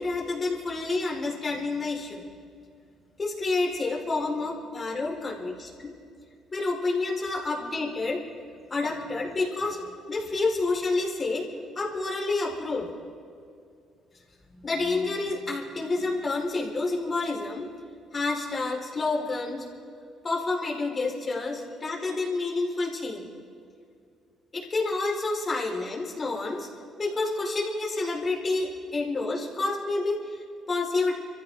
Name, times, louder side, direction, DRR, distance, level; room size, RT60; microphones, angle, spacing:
voice 1, 0.0-2.2 3.2-5.9 6.5-8.2 8.7-11.4 11.7-12.9 14.5-17.7 18.1-19.6 20.2-23.3 24.5-26.7 27.0-31.1, left 3 dB, 35° left, -2 dB, 4.6 m, -29 dB
25.0 x 14.5 x 3.8 m, 2.3 s
supercardioid pair, 80°, 0 cm